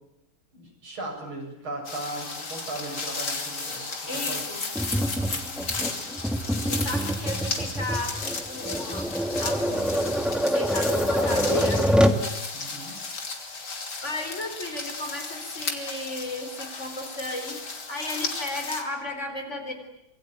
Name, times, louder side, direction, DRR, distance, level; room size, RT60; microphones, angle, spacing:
voice 1, 0.5-4.4 5.7-6.0 10.9-12.1 12.5-13.0, right 2 dB, 75° right, 2 dB, 8.4 m, -37 dB
sound 1, 1.8-18.8, left 3 dB, 55° left, 3.5 m, -34 dB
voice 2, 4.1-4.6 6.6-9.1 9.4-10.1 10.5-11.8 14.0-19.7, left 1 dB, 30° left, 5 dB, 4.3 m, -34 dB
Tap, 4.8-12.3, equal, ahead, 1.4 m, -26 dB
26.5 x 23.5 x 9.4 m, 0.87 s
omnidirectional pair, 2.3 m